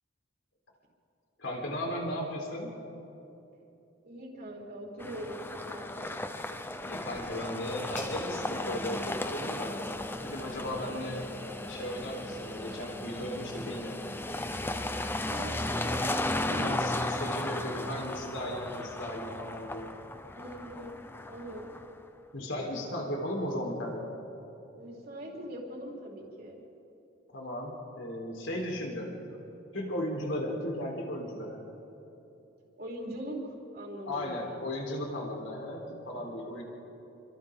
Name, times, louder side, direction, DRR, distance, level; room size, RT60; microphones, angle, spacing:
voice 1, 1.4-2.8 6.8-9.7 10.2-11.3 11.7-14.0 16.6-20.0 22.3-24.0 27.3-29.1 29.7-31.6 34.0-36.6, left 1 dB, 75° left, 0 dB, 3.9 m, -36 dB
voice 2, 4.0-6.3 15.2-16.1 16.4-18.0 20.3-21.0 21.3-21.7 24.7-26.6 32.8-34.6 36.1-36.5, right 1 dB, 50° right, -3 dB, 4.5 m, -42 dB
sound 1, 5.0-22.0, left 1 dB, 10° left, 0.7 m, -35 dB
sound 2, 6.6-12.0, left 3 dB, 40° left, 4.0 m, -54 dB
29.5 x 25.5 x 3.8 m, 3.0 s
head